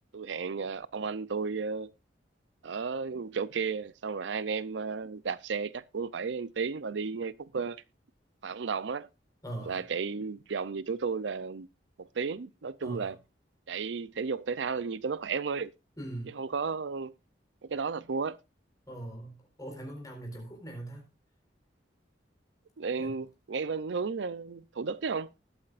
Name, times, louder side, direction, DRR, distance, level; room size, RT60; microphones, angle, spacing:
voice 1, 0.1-1.9 2.6-7.8 8.4-9.1 9.7-11.7 12.0-13.2 13.7-15.7 16.3-17.1 17.6-18.4 22.8-25.3, right 5 dB, 80° right, 0.5 m, -33 dB
voice 2, 9.4-9.8 12.8-13.2 16.0-16.4 18.9-21.0 23.0-23.2, right 1 dB, 20° left, 4.2 m, -41 dB
19.5 x 8.6 x 2.5 m
head